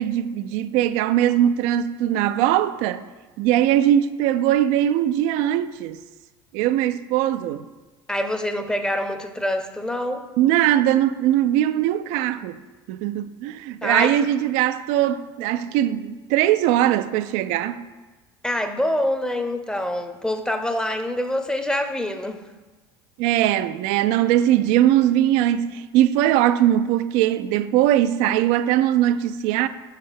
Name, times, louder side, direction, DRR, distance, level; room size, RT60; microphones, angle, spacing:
voice 1, 0.0-3.0 3.4-6.0 6.5-7.7 10.4-12.6 12.9-17.9 23.2-29.7, right 12 dB, 60° right, 0.4 m, -20 dB
voice 2, 8.1-10.3 13.8-14.2 18.4-22.5, left 1 dB, 5° left, 0.8 m, -25 dB
5.8 x 5.6 x 5.1 m
hypercardioid pair, 75°, 14 cm